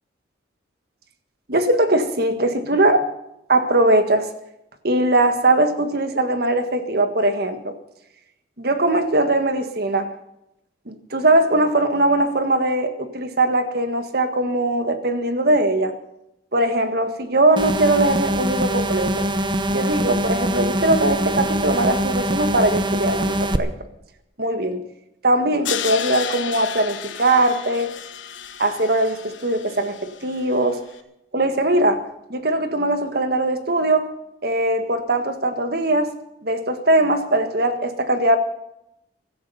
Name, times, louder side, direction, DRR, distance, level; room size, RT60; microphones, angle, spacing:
voice 1, 1.5-3.1 3.5-4.3 4.8-7.8 8.6-10.1 10.8-15.9 16.5-19.3 19.7-23.7 24.4-24.9 25.2-27.9 28.6-30.8 31.3-34.1 34.4-36.1 36.4-38.4, right 1 dB, 55° right, 9 dB, 1.6 m, -20 dB
sound 1, 17.6-23.6, right 1 dB, 25° right, 0.8 m, -23 dB
Crash cymbal, 25.6-30.7, left 9 dB, 75° left, 1.2 m, -33 dB
16.5 x 14.0 x 5.6 m, 0.83 s
head